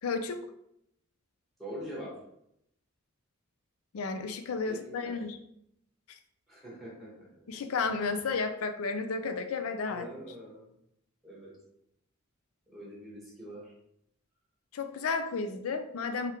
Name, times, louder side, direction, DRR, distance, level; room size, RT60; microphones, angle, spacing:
voice 1, 0.0-0.5 3.9-5.4 7.5-10.1 14.7-16.3, left 4 dB, 85° left, 8 dB, 0.4 m, -32 dB
voice 2, 1.6-2.1 4.6-5.2 6.5-7.3 9.9-10.7 11.2-11.5 12.7-13.7, equal, ahead, -5 dB, 1.4 m, -43 dB
3.5 x 3.5 x 3.0 m, 0.77 s
head